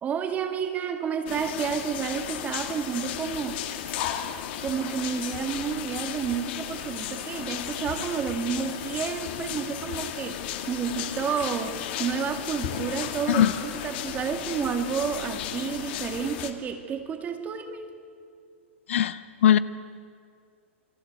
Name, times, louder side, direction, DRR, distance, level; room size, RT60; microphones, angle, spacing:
voice 1, 0.0-3.6 4.6-17.9, right 7 dB, 20° right, 2.4 m, -30 dB
sound 1, 1.3-16.5, left 10 dB, 50° left, 2.4 m, -34 dB
voice 2, 18.9-19.6, left 11 dB, 70° left, 1.1 m, -20 dB
29.0 x 22.0 x 9.2 m
hypercardioid pair, 135°, 7 cm